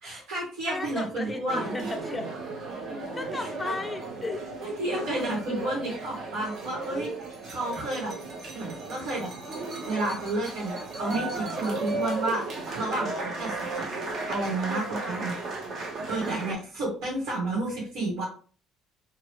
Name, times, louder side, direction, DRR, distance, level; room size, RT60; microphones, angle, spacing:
voice 1, 0.0-1.7 3.3-3.7 4.6-7.1 7.4-8.1 8.5-9.3 9.9-12.4 12.7-13.1 13.4-13.9 14.2-15.4 16.1-18.2, right 2 dB, 80° right, -4 dB, 1.4 m, -31 dB
voice 2, 0.7-2.3 3.1-4.5 15.0-15.4 16.2-16.5, left 2 dB, 10° left, 5 dB, 0.4 m, -35 dB
sound 1, 1.5-16.6, right 3 dB, 40° right, 0.6 m, -35 dB
2.9 x 2.4 x 3.1 m, 0.40 s
cardioid pair, 170°, 0 cm